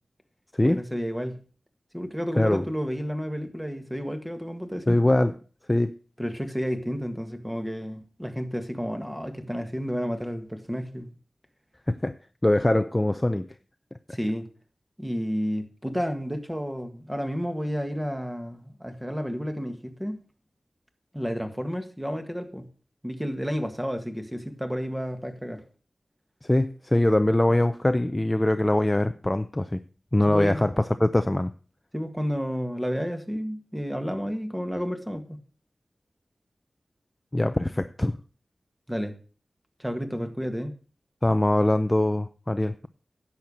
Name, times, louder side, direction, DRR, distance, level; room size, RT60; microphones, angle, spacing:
voice 1, 0.6-1.4 1.9-5.2 6.2-11.1 14.1-14.5 15.0-20.2 21.1-22.7 23.0-25.6 30.3-30.6 31.9-35.4 38.9-39.2 39.8-40.7, equal, 5° right, 1.7 m, -31 dB
voice 2, 2.4-2.7 4.9-5.3 5.7-6.0 11.9-12.1 12.4-13.5 14.1-14.2 26.5-29.8 30.1-31.5 37.3-38.1 41.2-42.9, left 1 dB, 15° left, 0.5 m, -22 dB
10.5 x 7.2 x 6.3 m
wide cardioid pair, 90°, 0 cm